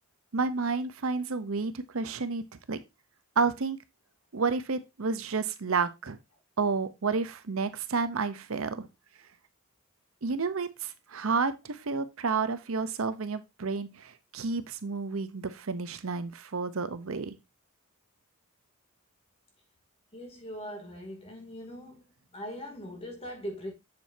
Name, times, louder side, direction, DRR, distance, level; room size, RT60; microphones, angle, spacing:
voice 1, 0.3-2.8 3.4-3.8 4.3-6.2 6.6-8.9 10.2-17.4, right 4 dB, 70° right, 0.7 m, -30 dB
voice 2, 20.1-22.0 22.3-23.7, equal, 25° left, 2.6 m, -40 dB
7.7 x 7.3 x 2.7 m
head